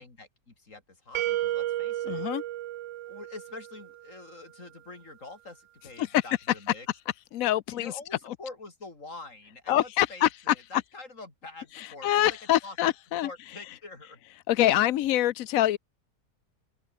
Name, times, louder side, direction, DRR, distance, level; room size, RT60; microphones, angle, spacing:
voice 1, 0.0-2.2 3.1-6.9 7.7-12.8 13.2-14.2, left 3 dB, 50° left, 4.3 m, -45 dB
sound 1, 1.1-4.0, right 13 dB, 70° right, 0.7 m, -32 dB
voice 2, 2.1-2.4 7.3-7.9 9.7-10.5 11.8-13.3 14.5-15.8, left 13 dB, 65° left, 1.0 m, -25 dB
open air
omnidirectional pair, 1.7 m